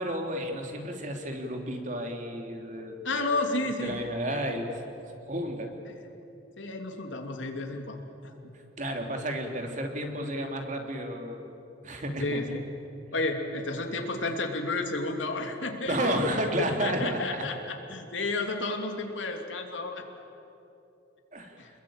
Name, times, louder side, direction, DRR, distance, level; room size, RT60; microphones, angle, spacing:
voice 1, 0.0-3.4 3.8-4.8 5.2-5.8 8.5-11.6 11.8-12.4 15.9-17.5 21.3-21.6, equal, 40° right, 3 dB, 3.1 m, -32 dB
voice 2, 3.0-4.0 4.3-4.6 6.6-8.3 12.2-12.6 13.1-16.1 16.6-20.0 21.6-21.7, left 2 dB, 85° left, 4 dB, 3.0 m, -32 dB
27.5 x 21.5 x 8.9 m, 2.8 s
head